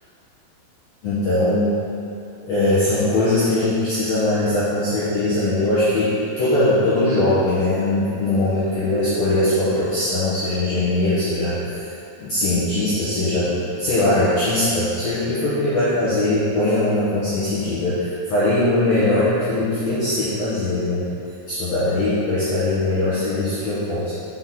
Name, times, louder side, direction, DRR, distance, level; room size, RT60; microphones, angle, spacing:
voice 1, 1.0-1.7 2.4-11.6 12.2-21.1 21.5-24.1, left 1 dB, 70° left, -12 dB, 1.6 m, -21 dB
6.6 x 5.9 x 3.9 m, 2.8 s
omnidirectional pair, 4.9 m